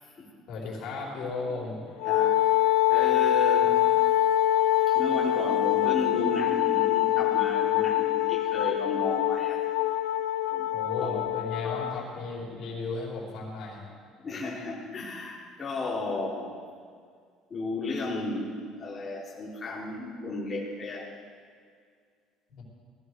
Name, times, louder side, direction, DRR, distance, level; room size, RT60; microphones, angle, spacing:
voice 1, 0.5-1.9 3.7-3.8 10.7-13.8 22.5-22.6, left 3 dB, 60° left, -3 dB, 4.5 m, -35 dB
Wind instrument woodwind instrument, 2.0-12.0, left 13 dB, 85° left, 0.7 m, -24 dB
voice 2, 2.0-2.4 2.9-3.8 4.9-9.6 10.5-10.7 11.0-11.3 11.6-11.8 14.2-16.6 17.5-21.1, left 3 dB, 25° left, -4 dB, 4.3 m, -34 dB
19.5 x 15.0 x 4.8 m, 2.1 s
cardioid pair, 135°, 0 cm